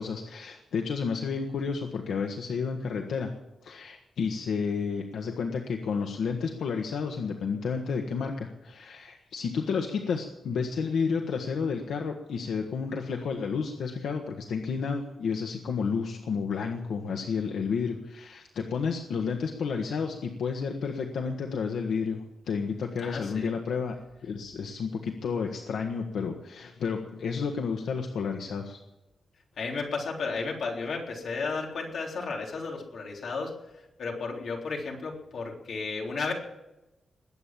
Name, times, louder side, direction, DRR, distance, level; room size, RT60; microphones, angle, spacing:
voice 1, 0.0-3.3 3.6-23.9 24.2-28.8, left 5 dB, 85° left, 3 dB, 1.5 m, -31 dB
voice 2, 23.0-23.5 29.6-36.3, left 4 dB, 60° left, 0 dB, 3.6 m, -33 dB
21.0 x 8.7 x 7.5 m, 0.97 s
wide cardioid pair, 170°, 0 cm